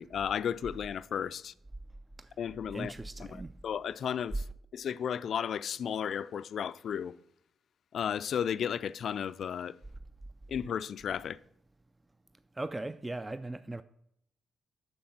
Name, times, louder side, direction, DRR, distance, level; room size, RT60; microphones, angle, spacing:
voice 1, 0.0-1.5 2.4-2.9 3.2-4.5 4.7-7.2 7.9-9.8 10.5-11.4, left 8 dB, 65° left, 0.3 m, -34 dB
voice 2, 2.7-3.5 12.6-13.8, right 2 dB, 20° right, 0.4 m, -38 dB
6.7 x 6.4 x 5.7 m
supercardioid pair, 60°, 0 cm